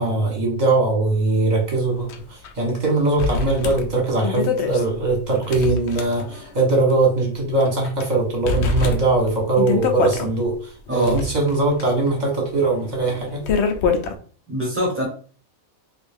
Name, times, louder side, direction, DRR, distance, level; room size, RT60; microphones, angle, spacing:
voice 1, 0.0-13.4, right 2 dB, 35° right, 0 dB, 1.1 m, -21 dB
sound 1, 2.1-2.2 2.4-2.5 3.2-6.6 6.9-7.0 7.6-8.1 8.5-10.3 10.9-14.2, left 5 dB, 65° left, 0.8 m, -25 dB
voice 2, 10.9-11.2 14.5-15.1, equal, 10° right, -1 dB, 0.9 m, -23 dB
3.2 x 2.5 x 3.4 m, 0.42 s
omnidirectional pair, 1.4 m